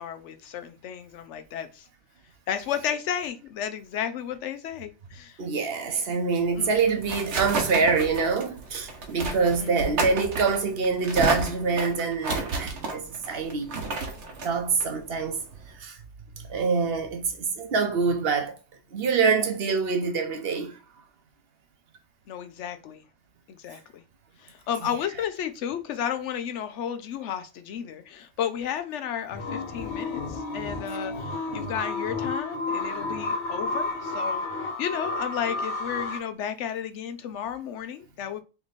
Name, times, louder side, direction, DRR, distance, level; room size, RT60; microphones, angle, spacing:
voice 1, 0.0-1.8 2.5-5.4 6.6-7.0 9.6-10.0 22.3-23.0 23.5-24.0 24.4-34.4 34.8-38.4, left 9 dB, 85° left, 1.0 m, -33 dB
voice 2, 5.4-13.8 14.4-15.4 15.8-16.0 16.3-18.6 18.9-20.8, right 4 dB, 60° right, 0.9 m, -25 dB
sound 1, 6.5-15.7, right 3 dB, 80° right, 1.2 m, -32 dB
sound 2, 29.3-36.2, left 3 dB, 70° left, 1.4 m, -31 dB
3.4 x 3.1 x 4.0 m
omnidirectional pair, 1.2 m